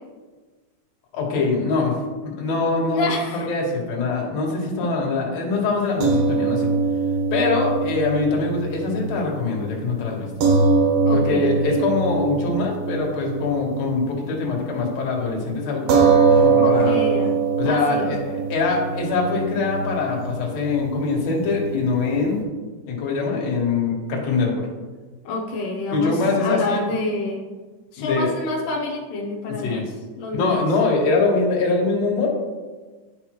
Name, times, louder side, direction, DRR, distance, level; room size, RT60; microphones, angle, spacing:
voice 1, 1.1-2.0 2.2-6.7 7.3-10.3 11.1-16.0 16.3-17.0 17.6-22.4 22.9-24.7 25.9-26.9 28.0-28.3 29.6-29.9 30.3-32.4, left 3 dB, 60° left, -2 dB, 2.4 m, -23 dB
voice 2, 2.9-3.5 4.8-4.9 11.0-11.8 16.6-17.3 17.6-18.4 25.2-27.4 27.9-29.8 30.2-30.6, left 2 dB, 85° left, -1 dB, 2.3 m, -28 dB
sound 1, 6.0-14.5 14.8-15.0 15.9-22.4, right 4 dB, 70° right, 1.4 m, -22 dB
10.0 x 5.2 x 3.0 m, 1.3 s
omnidirectional pair, 3.6 m